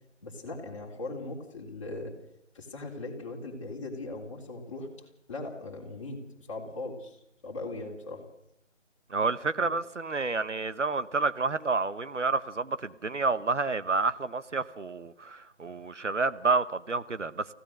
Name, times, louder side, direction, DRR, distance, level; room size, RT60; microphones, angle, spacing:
voice 1, 0.2-2.1 2.5-7.2 7.4-8.2, left 2 dB, 25° left, 3.4 m, -39 dB
voice 2, 9.1-17.5, right 4 dB, 75° right, 1.1 m, -29 dB
24.5 x 16.0 x 6.6 m
figure-of-eight pair, 160°, 36 cm